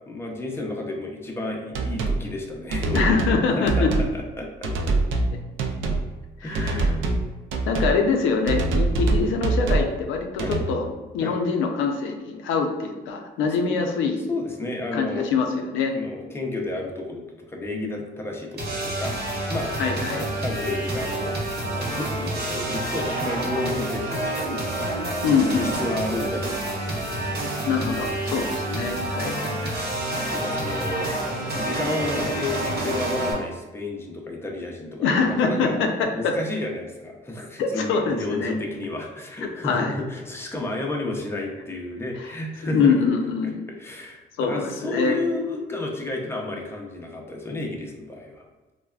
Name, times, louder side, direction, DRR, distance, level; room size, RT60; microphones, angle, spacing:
voice 1, 0.1-3.2 3.6-3.9 4.1-4.7 6.4-7.1 10.4-10.6 11.2-11.4 13.6-13.8 14.3-15.3 15.9-19.2 19.5-19.7 20.4-24.6 25.3-27.5 30.3-31.1 31.6-35.8 36.1-43.0 43.4-48.4, left 2 dB, 10° left, 0 dB, 0.5 m, -31 dB
sound 1, 1.7-2.2 2.7-3.4 3.7-4.1 4.6-5.3 5.6-6.1 6.5-7.2 7.5-7.9 8.5-9.9 10.4-10.6, right 3 dB, 80° right, 0.4 m, -23 dB
voice 2, 2.9-3.9 6.4-6.9 7.7-10.9 11.1-14.2 14.9-15.5 15.7-16.0 19.8-20.3 25.2-25.9 27.7-29.9 35.0-36.4 37.6-38.5 39.6-39.9 42.7-43.7 44.4-45.2, left 5 dB, 90° left, 3 dB, 0.4 m, -24 dB
sound 2, 18.6-33.3, right 1 dB, 55° right, 0.9 m, -28 dB
3.3 x 2.1 x 2.3 m, 1.1 s
cardioid pair, 90°, 20 cm